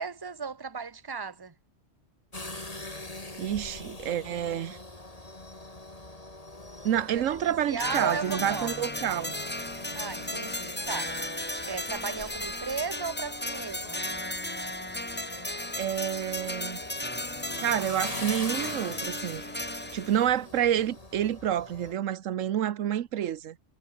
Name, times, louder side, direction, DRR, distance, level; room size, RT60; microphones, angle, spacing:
voice 1, 0.0-1.5 7.1-8.7 9.9-11.1 11.7-14.0, right 5 dB, 20° right, 1.1 m, -35 dB
sound 1, 2.3-21.9, left 2 dB, 30° left, 3.0 m, -43 dB
voice 2, 3.4-4.8 6.8-9.3 15.8-16.8 17.6-23.6, right 10 dB, 85° right, 1.2 m, -29 dB
sound 2, 7.8-20.3, left 1 dB, 10° left, 1.3 m, -35 dB
omnidirectional pair, 1.3 m